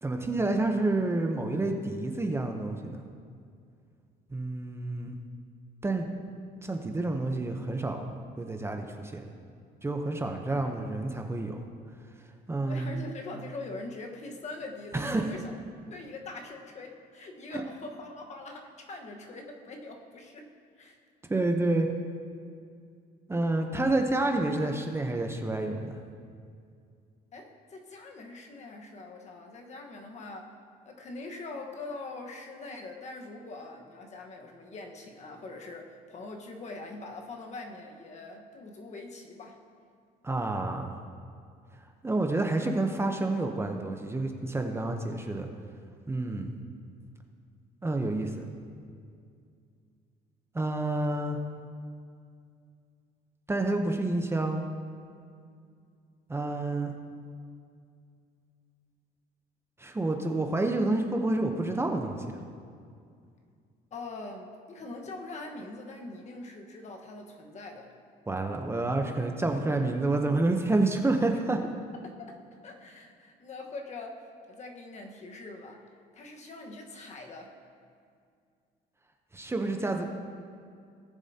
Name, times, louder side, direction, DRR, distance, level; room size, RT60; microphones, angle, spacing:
voice 1, 0.0-3.0 4.3-5.2 5.8-6.1 6.6-9.2 9.8-11.6 12.5-13.0 14.9-15.2 17.5-17.6 21.3-21.9 23.3-26.0 40.2-40.9 42.0-45.5 46.1-46.5 47.8-48.5 50.5-51.4 53.5-54.6 56.3-56.9 59.8-62.2 68.3-71.6 79.3-80.1, right 2 dB, 15° right, 3 dB, 0.8 m, -29 dB
voice 2, 12.7-15.4 15.9-20.5 20.7-21.0 27.3-30.5 30.8-39.6 63.9-67.9 72.0-75.8 76.1-77.5, left 2 dB, 45° left, 2 dB, 1.3 m, -43 dB
18.5 x 7.0 x 2.8 m, 2.3 s
cardioid pair, 110°, 17 cm